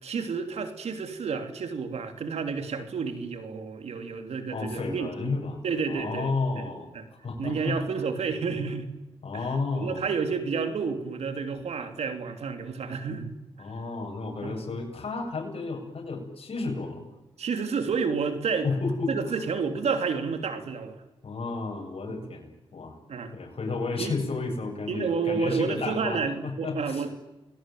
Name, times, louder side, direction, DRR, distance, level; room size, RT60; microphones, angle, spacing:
voice 1, 0.0-5.4 5.6-6.7 6.9-7.0 7.4-8.9 9.3-9.5 9.7-13.3 14.4-14.6 17.4-18.7 19.1-21.0 22.1-22.2 23.1-23.3 24.0-24.1 24.9-27.1, right 5 dB, 85° right, 7 dB, 3.1 m, -30 dB
voice 2, 4.5-5.6 5.9-7.8 9.2-10.0 13.6-17.1 18.6-19.1 21.2-23.0 23.3-27.0, left 3 dB, 65° left, 1 dB, 7.8 m, -32 dB
29.5 x 21.0 x 9.3 m, 1.0 s
cardioid pair, 60°, 11 cm